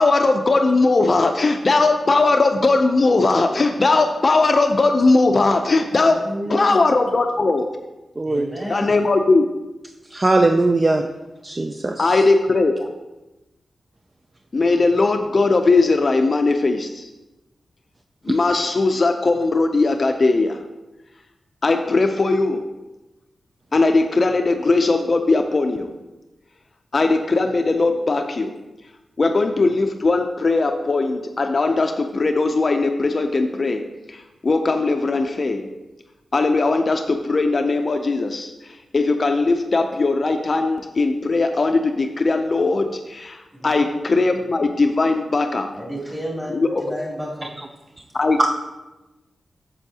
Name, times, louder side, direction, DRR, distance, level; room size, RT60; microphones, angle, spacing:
voice 1, 0.0-6.2 6.5-7.7 8.7-9.4 12.0-12.9 14.5-17.1 18.3-20.6 21.6-22.6 23.7-25.9 26.9-28.6 29.2-33.8 34.1-35.7 36.3-38.5 38.9-45.7 46.5-46.8 48.1-48.5, left 3 dB, 45° left, 5 dB, 0.5 m, -19 dB
voice 2, 6.0-6.8 8.2-8.9 43.5-43.9 45.7-47.5, equal, 10° right, -5 dB, 2.6 m, -31 dB
voice 3, 8.2-8.5 10.1-11.0 11.4-12.1 48.4-48.5, right 2 dB, 25° right, 5 dB, 0.4 m, -19 dB
8.1 x 6.8 x 2.8 m, 1.0 s
wide cardioid pair, 90°, 0 cm